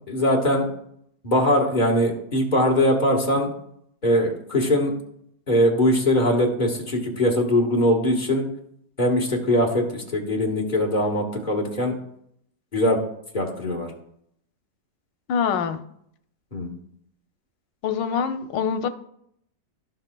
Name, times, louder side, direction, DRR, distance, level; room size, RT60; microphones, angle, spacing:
voice 1, 0.1-0.6 1.2-3.5 4.0-4.9 5.5-8.5 9.0-11.9 12.7-13.0 13.3-13.9 16.5-16.7, left 1 dB, 30° left, 0 dB, 1.3 m, -21 dB
voice 2, 15.3-15.8 17.8-18.9, left 7 dB, 90° left, 9 dB, 1.3 m, -24 dB
15.5 x 5.3 x 2.2 m, 0.72 s
omnidirectional pair, 1.9 m